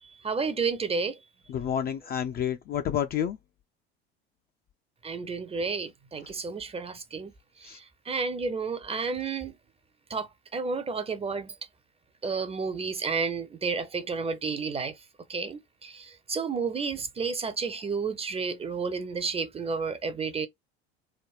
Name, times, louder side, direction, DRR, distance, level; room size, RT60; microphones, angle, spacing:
voice 1, 0.2-1.2 5.0-7.3 7.6-9.5 10.1-11.5 12.2-15.0 15.3-20.5, right 4 dB, 20° right, 0.5 m, -31 dB
voice 2, 1.5-3.4 7.6-7.8, left 9 dB, 30° left, 0.4 m, -29 dB
3.5 x 2.1 x 2.3 m
hypercardioid pair, 70°, 32 cm